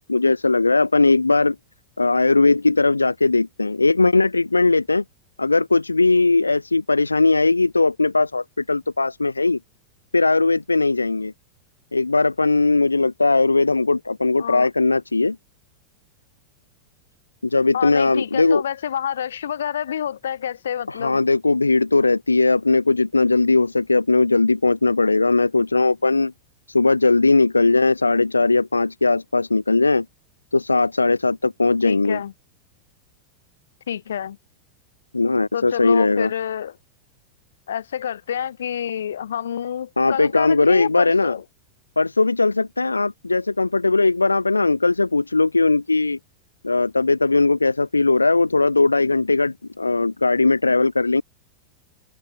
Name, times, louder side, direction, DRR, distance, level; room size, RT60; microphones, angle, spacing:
voice 1, 0.1-1.6 2.0-5.0 5.4-9.6 10.1-11.3 11.9-15.4 17.4-18.6 20.9-26.3 26.7-30.1 30.5-32.2 35.1-36.3 40.0-41.4 42.0-46.2 46.6-51.2, left 3 dB, 80° left, 0.4 m, -19 dB
voice 2, 17.7-21.2 31.8-32.3 33.9-34.4 35.5-36.8 37.7-41.4, left 9 dB, 65° left, 1.3 m, -28 dB
figure-of-eight pair, 90°, 0 cm